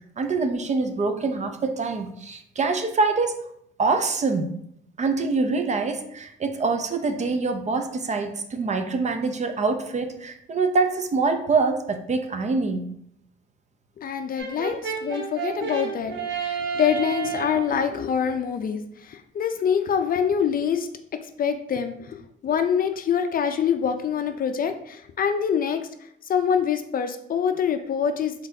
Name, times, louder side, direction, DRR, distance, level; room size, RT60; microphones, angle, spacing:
voice 1, 0.2-3.4 3.8-4.5 5.0-12.9, right 4 dB, 35° right, 7 dB, 0.5 m, -25 dB
voice 2, 14.0-20.9 21.4-25.9 26.3-28.5, left 7 dB, 45° left, 8 dB, 0.4 m, -25 dB
Brass instrument, 14.4-17.7, right 6 dB, 65° right, 0.8 m, -31 dB
3.9 x 3.9 x 2.7 m, 0.73 s
cardioid pair, 90°, 20 cm